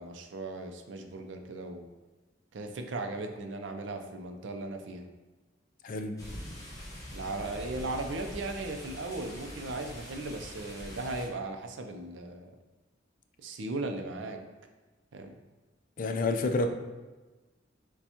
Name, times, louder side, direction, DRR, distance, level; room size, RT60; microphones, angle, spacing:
voice 1, 0.0-1.9 2.5-5.1 7.1-12.5 13.4-14.4 15.1-15.4, right 2 dB, 70° right, 5 dB, 0.5 m, -37 dB
voice 2, 5.8-6.2 16.0-16.7, left 2 dB, 45° left, 6 dB, 0.4 m, -29 dB
sound 1, 6.2-11.3, equal, 20° left, 0.9 m, -44 dB
6.8 x 2.3 x 2.8 m, 1.2 s
head